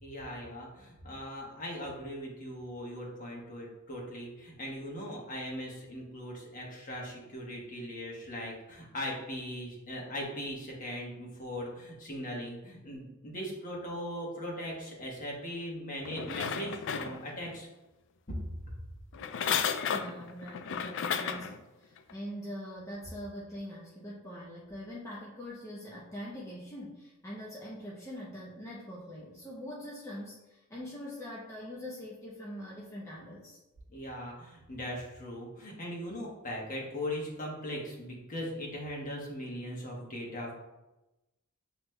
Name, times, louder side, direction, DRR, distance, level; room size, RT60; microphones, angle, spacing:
voice 1, 0.0-17.7 18.3-18.4 18.7-18.8 33.9-40.5, equal, 40° left, -2 dB, 1.1 m, -39 dB
sound 1, 16.0-17.6 19.1-21.6 22.1-22.2, left 7 dB, 60° left, 0.3 m, -33 dB
voice 2, 19.9-33.6, equal, 15° left, -6 dB, 0.6 m, -43 dB
7.7 x 3.0 x 2.2 m, 1.0 s
head